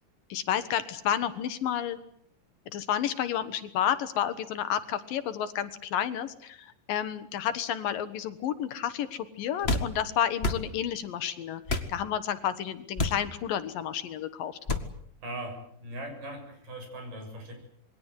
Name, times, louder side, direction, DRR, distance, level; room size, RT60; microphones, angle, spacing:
voice 1, 0.3-2.0 2.7-14.6, left 10 dB, 70° left, 12 dB, 2.8 m, -31 dB
sound 1, 9.6-9.9 10.4-10.6 11.7-11.9 13.0-13.2 14.7-14.9, left 2 dB, 35° left, 0.9 m, -28 dB
voice 2, 15.2-17.5, right 1 dB, 60° right, 4 dB, 8.8 m, -39 dB
27.5 x 22.0 x 8.2 m, 0.67 s
omnidirectional pair, 4.3 m